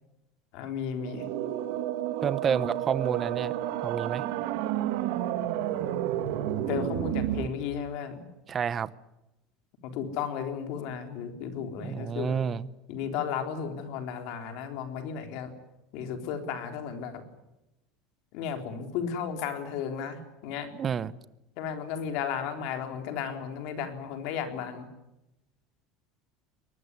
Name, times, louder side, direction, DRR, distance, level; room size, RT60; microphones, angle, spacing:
voice 1, 0.5-1.3 6.7-8.3 9.8-12.4 12.9-15.5 15.9-17.2 18.3-20.7 21.6-24.9, left 7 dB, 60° left, 3.8 m, -34 dB
sound 1, 1.0-7.5, right 12 dB, 70° right, 1.9 m, -31 dB
voice 2, 2.2-3.5 3.8-4.2 8.5-8.9 11.8-12.7 20.7-21.1, right 7 dB, 25° right, 0.8 m, -29 dB
23.5 x 20.0 x 9.6 m
cardioid pair, 150°, 0 cm